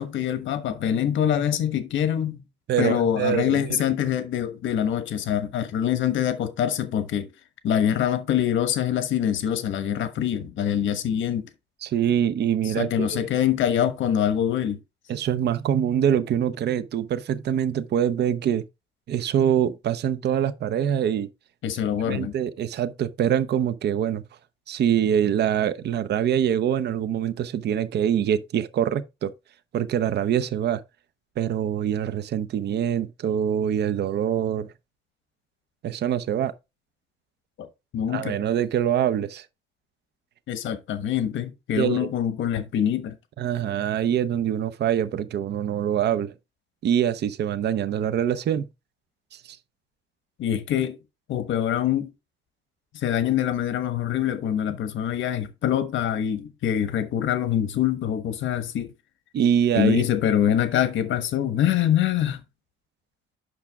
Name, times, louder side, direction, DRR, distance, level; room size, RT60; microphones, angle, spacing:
voice 1, 0.0-2.4 2.8-7.3 7.6-11.5 12.6-14.8 21.6-22.3 37.6-37.7 37.9-38.4 40.5-43.2 50.4-51.0 51.3-52.1 52.9-58.9 59.8-62.4, left 10 dB, 75° left, 1.3 m, -24 dB
voice 2, 2.7-3.8 11.8-13.2 15.1-18.6 19.1-21.3 22.0-24.2 24.7-29.3 29.7-30.8 31.4-34.7 35.8-36.5 38.1-39.5 41.8-42.1 43.4-46.3 46.8-48.7 49.3-49.6 59.3-60.1, right 9 dB, 60° right, 0.7 m, -24 dB
8.1 x 5.9 x 3.5 m
cardioid pair, 140°, 20 cm